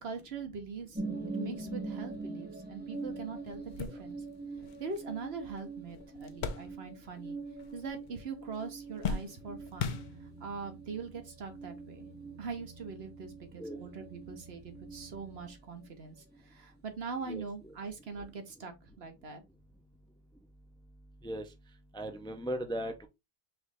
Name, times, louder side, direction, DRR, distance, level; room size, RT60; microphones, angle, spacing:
voice 1, 0.0-1.0 1.3-4.2 4.8-7.4 7.7-10.0 10.4-12.1 12.4-19.4, right 5 dB, 80° right, 1.2 m, -42 dB
soft music, 0.9-14.4 14.7-15.6 15.9-16.0, right 3 dB, 10° right, 0.8 m, -43 dB
sound 1, 3.0-3.1 3.5-7.2 7.5-8.2 8.5-10.6 11.3-11.4 12.7-12.9, left 5 dB, 55° left, 0.7 m, -40 dB
sound 2, 9.4-15.5, right 4 dB, 40° right, 0.8 m, -56 dB
voice 2, 21.9-23.1, right 1 dB, 5° left, 0.4 m, -37 dB
4.6 x 3.1 x 3.4 m
omnidirectional pair, 1.0 m